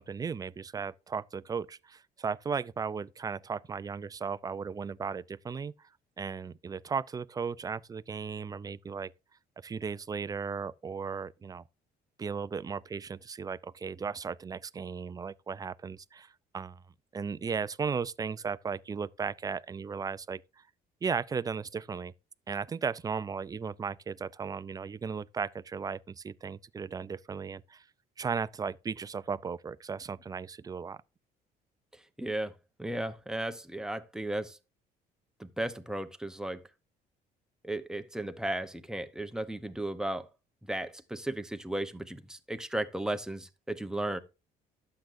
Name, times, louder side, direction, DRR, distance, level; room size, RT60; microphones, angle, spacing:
voice 1, 0.0-5.9 6.2-9.1 9.6-11.6 12.2-16.8 17.1-20.4 21.0-22.1 22.5-27.8 28.2-31.0, right 5 dB, 20° right, 0.4 m, -36 dB
voice 2, 32.2-32.5 32.8-34.6 35.4-36.6 37.6-40.3 40.7-44.2, right 1 dB, 5° right, 0.9 m, -35 dB
11.5 x 7.7 x 2.6 m
cardioid pair, 110°, 17 cm